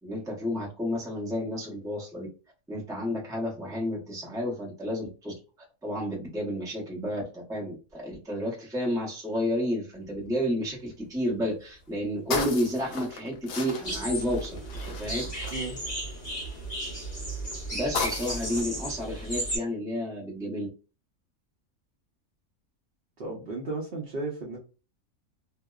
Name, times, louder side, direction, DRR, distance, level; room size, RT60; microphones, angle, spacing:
voice 1, 0.0-2.3 2.7-5.3 5.8-15.2 17.7-20.7, equal, 5° right, -3 dB, 0.4 m, -31 dB
sound 1, 10.0-10.5 11.0-11.1 11.3-16.4 17.1-18.6, left 4 dB, 85° left, 1.0 m, -35 dB
sound 2, 13.8-19.6, right 1 dB, 30° left, 0.8 m, -34 dB
voice 2, 23.2-24.6, right 3 dB, 55° right, -3 dB, 0.7 m, -34 dB
2.7 x 2.0 x 2.2 m, 0.33 s
omnidirectional pair, 1.5 m